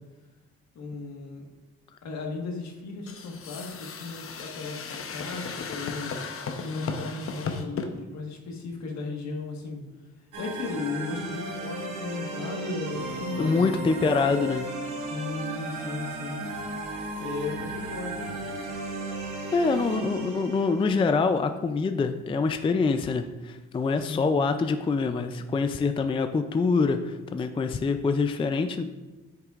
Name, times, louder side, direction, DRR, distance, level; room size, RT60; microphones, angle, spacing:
voice 1, 0.7-1.5 2.0-6.2 6.6-9.8 10.4-13.8 15.0-16.4 17.2-18.4 24.0-24.4, left 3 dB, 65° left, 1 dB, 1.5 m, -36 dB
sound 1, 3.1-7.9, left 5 dB, 45° left, 0.8 m, -35 dB
sound 2, 10.3-21.1, right 2 dB, 80° right, 1.6 m, -35 dB
voice 2, 13.4-14.6 19.5-28.9, left 4 dB, 20° left, 8 dB, 0.3 m, -25 dB
8.3 x 6.8 x 2.4 m, 1.1 s
cardioid pair, 90°, 30 cm